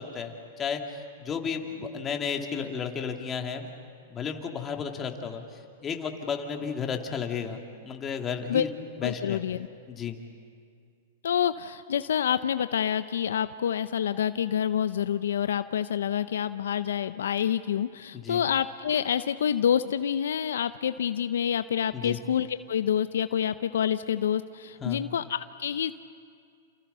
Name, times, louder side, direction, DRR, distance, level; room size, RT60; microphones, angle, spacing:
voice 1, 0.0-3.7 4.1-5.4 5.8-8.7 9.0-9.4 9.9-10.2 18.1-18.4 21.9-22.2 24.8-25.0, left 6 dB, 25° left, 3 dB, 2.5 m, -33 dB
voice 2, 9.0-9.7 11.2-25.9, left 9 dB, 80° left, 12 dB, 0.6 m, -27 dB
29.5 x 28.5 x 5.6 m, 2.2 s
hypercardioid pair, 120°, 0 cm